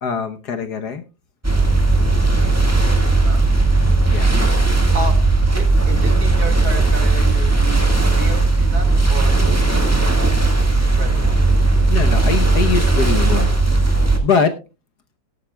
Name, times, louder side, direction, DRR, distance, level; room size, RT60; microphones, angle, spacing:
voice 1, 0.0-1.0 4.1-4.3 11.9-13.5 13.8-13.9 14.2-14.5, left 6 dB, 60° left, 9 dB, 1.4 m, -22 dB
sound 1, 1.4-14.2, right 2 dB, 10° right, 1.5 m, -16 dB
voice 2, 5.5-11.4, right 2 dB, 50° right, 6 dB, 2.6 m, -32 dB
17.0 x 12.0 x 2.2 m, 0.28 s
omnidirectional pair, 2.2 m